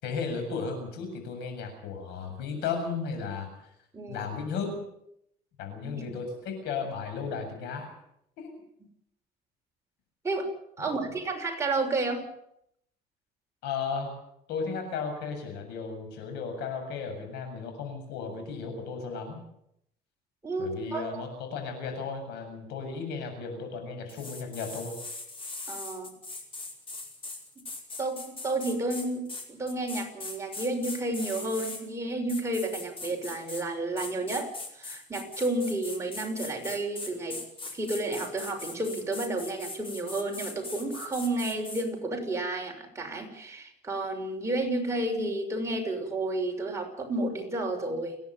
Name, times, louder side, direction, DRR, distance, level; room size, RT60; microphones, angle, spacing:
voice 1, 0.0-3.5 4.1-4.7 5.6-7.9 8.4-8.5 10.8-11.1 13.6-14.1 14.5-19.4 20.6-25.0, left 5 dB, 90° left, 5 dB, 7.6 m, -35 dB
voice 2, 3.9-4.2 5.8-6.0 10.2-10.5 10.8-12.2 20.4-21.2 25.7-26.1 28.0-37.4 37.7-48.2, right 2 dB, 15° right, 1 dB, 6.2 m, -31 dB
sound 1, 24.1-31.8 32.3-33.7 34.0-41.8, left 3 dB, 30° left, 5.0 m, -40 dB
29.5 x 11.0 x 9.4 m, 0.75 s
cardioid pair, 110°, 17 cm